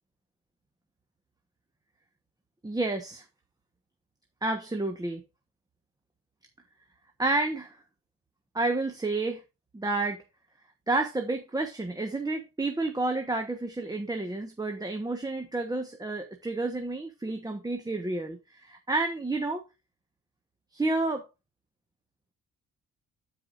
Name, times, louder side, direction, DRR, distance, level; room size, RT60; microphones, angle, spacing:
voice 1, 2.6-3.2 4.4-5.2 7.2-7.8 8.5-9.4 9.7-10.2 10.9-19.6 20.7-21.3, right 2 dB, 10° right, 1.3 m, -30 dB
13.0 x 4.9 x 2.6 m
cardioid pair, 90°, 30 cm